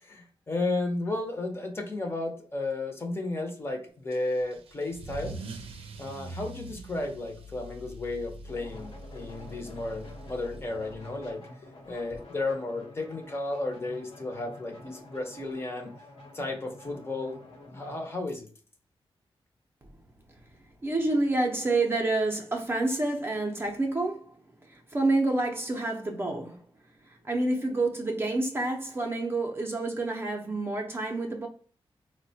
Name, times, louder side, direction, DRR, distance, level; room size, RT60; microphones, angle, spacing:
voice 1, 0.0-5.4 6.0-11.4 11.9-15.9 16.3-17.4 17.7-18.5, left 2 dB, 25° left, 0.6 m, -33 dB
Car / Engine starting / Accelerating revving vroom, 4.1-11.3, right 2 dB, 75° right, 0.5 m, -44 dB
sound 1, 8.5-18.1, left 2 dB, 80° left, 0.9 m, -49 dB
voice 2, 20.8-26.6 27.0-31.5, right 2 dB, 25° right, 0.5 m, -28 dB
3.9 x 2.1 x 2.6 m
wide cardioid pair, 150°, 10 cm